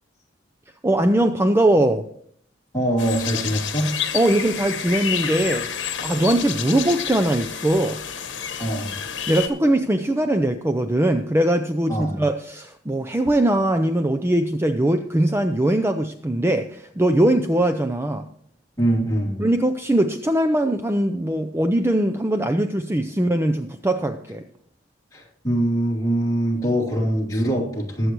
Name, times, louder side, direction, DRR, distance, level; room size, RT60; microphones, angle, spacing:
voice 1, 0.8-2.0 4.1-5.7 6.0-8.0 9.3-18.3 19.4-24.4, right 1 dB, 15° right, 7 dB, 0.5 m, -21 dB
voice 2, 2.7-3.9 8.6-8.9 11.9-12.2 18.8-19.4 25.1-28.1, right 1 dB, 20° left, -3 dB, 2.8 m, -23 dB
sound 1, 3.0-9.5, left 8 dB, 70° left, 1.2 m, -29 dB
20.5 x 7.9 x 3.1 m, 0.63 s
head